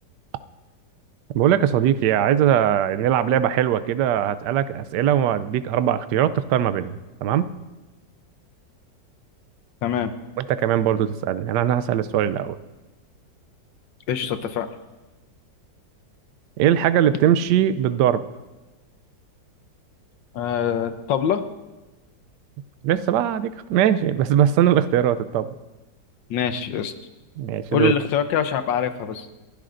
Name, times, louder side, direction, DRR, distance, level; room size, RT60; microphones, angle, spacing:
voice 1, 1.3-6.9 7.2-7.5 10.5-12.6 16.6-18.2 22.8-25.5 27.4-27.9, right 10 dB, 75° right, 13 dB, 1.2 m, -20 dB
voice 2, 9.8-10.1 14.1-14.7 20.3-21.5 26.3-26.9 27.7-29.3, left 8 dB, 85° left, 9 dB, 1.5 m, -24 dB
28.5 x 12.0 x 2.6 m, 1.1 s
omnidirectional pair, 1.9 m